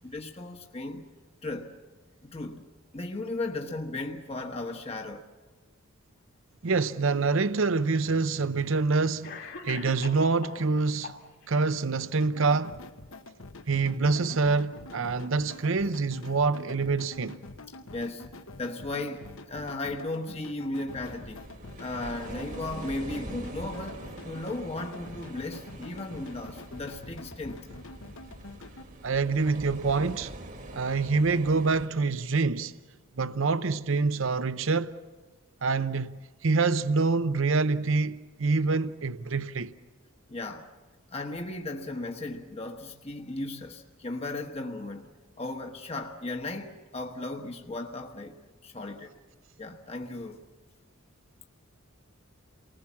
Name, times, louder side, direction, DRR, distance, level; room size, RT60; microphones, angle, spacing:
voice 1, 0.0-1.1 1.4-1.8 2.2-2.7 2.9-5.3 17.9-18.3 18.5-21.4 21.8-27.7 40.3-40.7 41.1-45.1 45.4-48.4 48.6-49.1 49.6-50.4, left 2 dB, 30° left, 1.2 m, -36 dB
voice 2, 6.6-9.4 9.6-11.1 11.5-12.8 13.7-17.4 29.0-30.3 30.7-32.7 33.2-35.0 35.6-36.1 36.4-39.7, right 4 dB, 65° right, 0.7 m, -26 dB
Cough, 7.5-7.6 8.6-8.7 9.2-10.7 11.0-11.7, left 4 dB, 50° left, 2.6 m, -41 dB
sound 1, 12.2-28.8, left 2 dB, 70° left, 1.1 m, -46 dB
sound 2, 20.9-31.9, right 1 dB, 40° right, 1.5 m, -44 dB
29.0 x 19.5 x 7.2 m
head